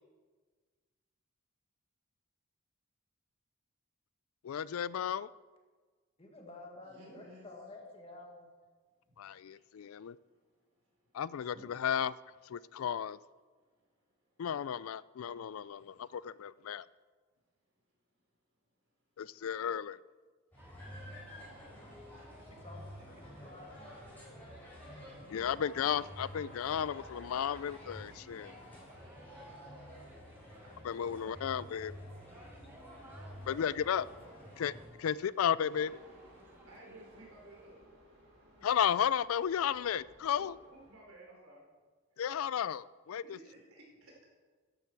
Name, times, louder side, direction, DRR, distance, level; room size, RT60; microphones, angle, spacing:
voice 1, 4.4-5.3 9.2-10.2 11.1-12.1 12.5-13.2 14.4-16.9 19.2-20.0 25.3-28.5 30.8-31.9 33.5-34.1 34.6-34.7 35.0-36.0 38.6-40.5 42.2-43.2, left 8 dB, 75° left, 20 dB, 0.3 m, -33 dB
voice 2, 6.2-8.5 22.5-23.7 32.6-32.9, left 2 dB, 25° left, 1 dB, 1.8 m, -51 dB
voice 3, 6.8-7.5 9.1-11.2 11.5-11.7 13.6-14.4 15.8-16.1 21.3-21.5 29.7-32.0 33.0-34.2 36.6-37.8 40.4-41.7 43.2-44.3, right 1 dB, 70° right, -2 dB, 4.3 m, -58 dB
sound 1, 20.5-34.9, equal, 10° left, 4.6 m, -50 dB
sound 2, 20.6-37.7, equal, 10° right, 1.3 m, -60 dB
sound 3, 35.7-41.0, right 1 dB, 55° right, 4.7 m, -60 dB
13.5 x 11.0 x 4.6 m, 1.4 s
head